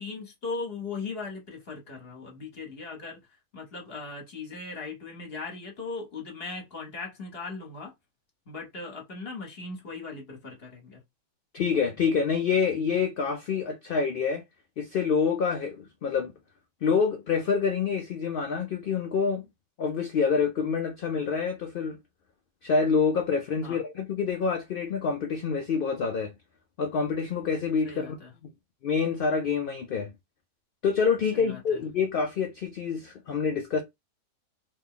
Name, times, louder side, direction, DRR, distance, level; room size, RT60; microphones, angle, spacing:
voice 1, 0.0-3.2 3.5-7.9 8.5-11.0 23.6-23.8 27.8-28.3 31.3-31.8, left 4 dB, 45° left, 1.1 m, -38 dB
voice 2, 11.5-14.4 14.8-16.3 16.8-19.5 19.8-22.0 22.6-26.3 26.8-28.2 28.8-30.1 30.8-33.8, left 5 dB, 75° left, 0.5 m, -27 dB
3.2 x 2.2 x 3.6 m
omnidirectional pair, 1.5 m